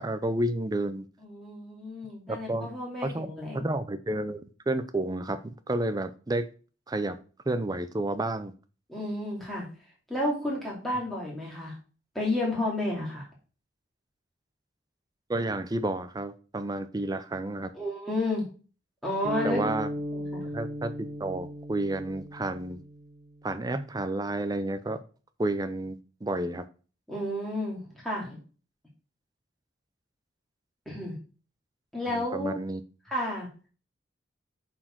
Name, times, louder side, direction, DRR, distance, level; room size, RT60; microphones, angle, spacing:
voice 1, 0.0-1.1 2.3-2.7 3.0-3.3 3.5-6.5 6.9-7.2 7.5-8.5 15.3-17.7 19.4-19.9 20.5-20.9 21.2-22.8 23.4-25.0 25.4-26.7 32.1-32.8, right 2 dB, 20° right, 11 dB, 0.4 m, -30 dB
voice 2, 1.2-3.7 8.9-9.7 10.1-11.8 12.1-13.2 17.7-18.5 19.0-19.7 20.1-20.4 27.1-28.4 30.9-31.2 31.9-32.6 33.0-33.5, left 1 dB, ahead, -5 dB, 2.5 m, -31 dB
sound 1, 19.2-23.5, equal, 50° right, 1.3 m, -36 dB
7.7 x 4.4 x 4.5 m, 0.37 s
head